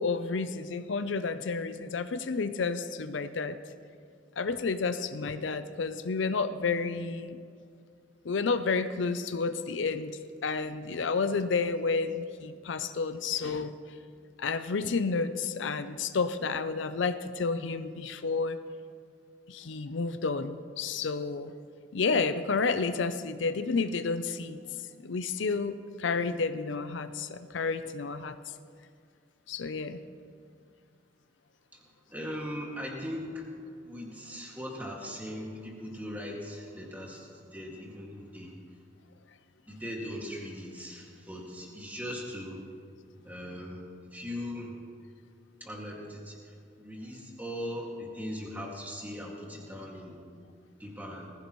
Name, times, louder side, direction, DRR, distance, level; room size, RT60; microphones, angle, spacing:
voice 1, 0.0-3.6 4.4-7.4 8.2-13.7 14.4-18.6 19.5-21.5 21.9-24.6 25.0-28.4 29.5-30.0, left 4 dB, 80° left, 11 dB, 0.5 m, -30 dB
voice 2, 32.1-38.6 39.7-42.6 43.2-44.7 45.6-50.2 50.8-51.3, equal, 10° right, -2 dB, 2.1 m, -39 dB
20.0 x 15.5 x 3.1 m, 2.3 s
head